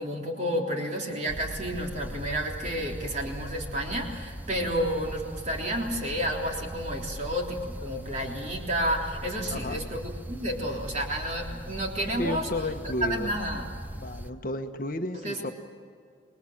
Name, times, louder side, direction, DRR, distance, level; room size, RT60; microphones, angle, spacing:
voice 1, 0.0-12.5 13.1-13.7 15.2-15.4, equal, 35° right, 0 dB, 3.5 m, -31 dB
sound 1, 1.3-14.3, equal, 10° right, 0.7 m, -40 dB
voice 2, 12.1-13.3 14.0-15.5, left 1 dB, 45° left, 6 dB, 1.2 m, -32 dB
28.0 x 21.0 x 7.4 m, 2.2 s
head